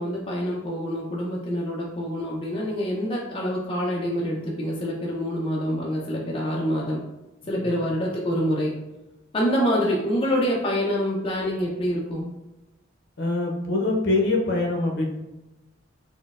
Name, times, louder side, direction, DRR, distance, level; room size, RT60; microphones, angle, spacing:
voice 1, 0.0-7.0 7.5-8.8 9.3-12.3, equal, 25° left, -3 dB, 0.4 m, -26 dB
voice 2, 13.2-15.1, left 2 dB, 60° left, 0 dB, 0.7 m, -24 dB
4.2 x 2.1 x 2.3 m, 0.99 s
head